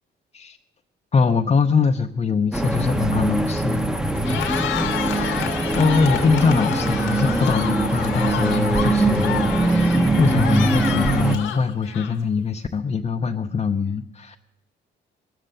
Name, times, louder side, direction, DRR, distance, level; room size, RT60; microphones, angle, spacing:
voice 1, 1.1-3.9 5.7-9.4 10.2-14.4, left 5 dB, 35° left, 3 dB, 0.6 m, -22 dB
sound 1, 2.5-11.4, right 2 dB, 5° right, 0.9 m, -22 dB
Cheering, 4.1-12.4, left 10 dB, 85° left, 1.4 m, -29 dB
20.0 x 7.6 x 6.6 m, 0.85 s
cardioid pair, 90°, 20 cm